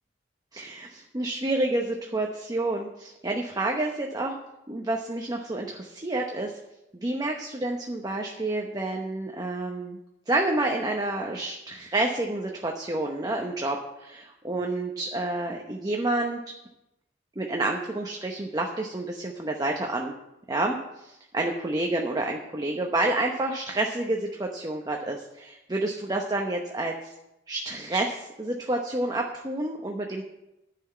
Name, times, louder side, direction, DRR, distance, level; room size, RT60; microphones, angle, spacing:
voice 1, 0.5-4.4 4.7-6.6 6.9-10.0 10.3-16.4 17.4-20.1 20.5-20.8 21.0-27.1 27.5-30.2, right 2 dB, 20° right, 1 dB, 0.9 m, -29 dB
10.5 x 5.9 x 8.1 m, 0.90 s
head